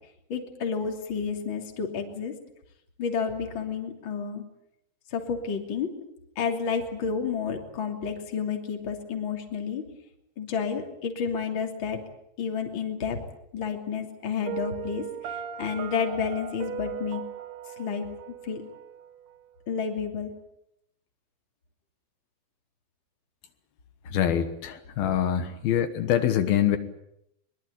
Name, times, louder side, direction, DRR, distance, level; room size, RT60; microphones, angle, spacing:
voice 1, 0.3-2.3 3.0-4.4 5.1-5.9 6.4-9.8 10.4-12.0 12.4-13.2 13.5-17.2 17.8-18.1 18.4-18.6 19.7-20.3, left 6 dB, 35° left, 3 dB, 3.2 m, -30 dB
Piano, 14.5-19.4, right 9 dB, 75° right, 3.6 m, -38 dB
voice 2, 24.1-26.8, left 10 dB, 70° left, 9 dB, 3.0 m, -24 dB
23.5 x 22.0 x 8.6 m, 0.78 s
omnidirectional pair, 4.6 m